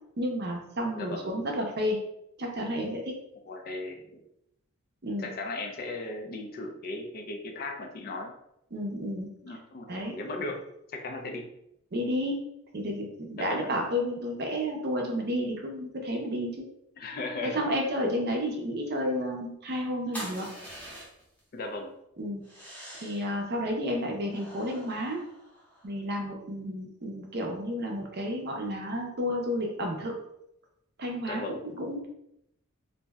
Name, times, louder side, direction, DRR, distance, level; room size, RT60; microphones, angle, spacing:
voice 1, 0.2-2.0 2.4-3.1 5.0-5.3 8.7-9.3 9.9-10.2 11.9-12.4 12.7-16.6 17.4-20.5 22.2-22.4 23.0-25.2 25.8-30.1 31.0-32.1, equal, 45° right, 1 dB, 0.6 m, -31 dB
voice 2, 0.9-1.3 3.5-4.3 5.2-8.3 9.4-10.6 10.9-11.5 13.4-13.9 17.0-17.6 21.5-21.9 31.3-31.6, left 2 dB, 40° left, 2 dB, 0.4 m, -37 dB
sound 1, 20.1-21.4 22.4-23.3 24.3-25.9, equal, 5° left, 0.7 m, -44 dB
2.6 x 2.1 x 3.4 m, 0.78 s
head